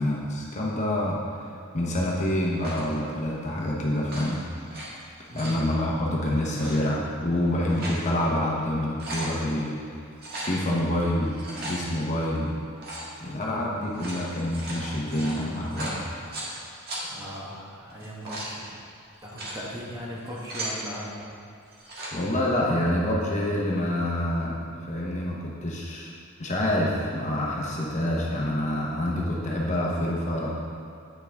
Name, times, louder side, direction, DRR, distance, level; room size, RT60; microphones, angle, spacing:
voice 1, 0.0-4.4 5.3-10.0 10.4-12.5 13.2-16.1 22.1-26.1 26.4-30.6, left 1 dB, 35° left, -3 dB, 0.9 m, -27 dB
sound 1, 2.6-3.0 4.0-4.9 5.2-5.6 6.5-6.7 7.4-8.0 8.5-8.6 8.8-9.3 10.2-10.6 11.2-11.8 12.8-13.1 13.8-16.5 16.9-17.0 17.9-18.5 19.1-19.6 20.2-20.8 21.7-22.1, right 1 dB, 50° right, 1.5 m, -37 dB
voice 2, 5.3-5.6 17.1-18.7 19.2-21.3, equal, 15° right, -5 dB, 1.1 m, -38 dB
9.1 x 5.8 x 3.5 m, 2.3 s
head